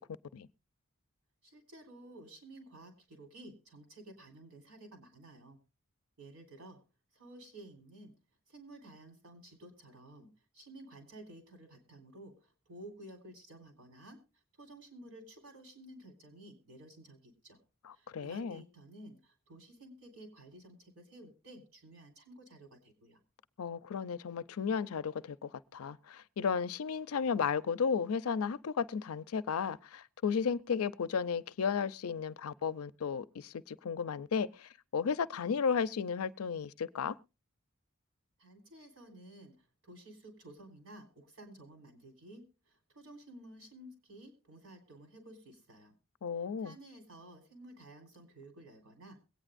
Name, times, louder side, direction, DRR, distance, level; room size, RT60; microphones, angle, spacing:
voice 1, 1.4-5.6 6.2-6.8 7.1-8.1 8.5-14.2 14.6-17.6 17.9-23.2 38.4-45.9 46.6-49.2, right 1 dB, 85° right, 3.6 m, -53 dB
voice 2, 17.8-18.6 23.6-37.2 46.2-46.8, left 6 dB, 85° left, 0.5 m, -34 dB
22.5 x 8.9 x 2.5 m
head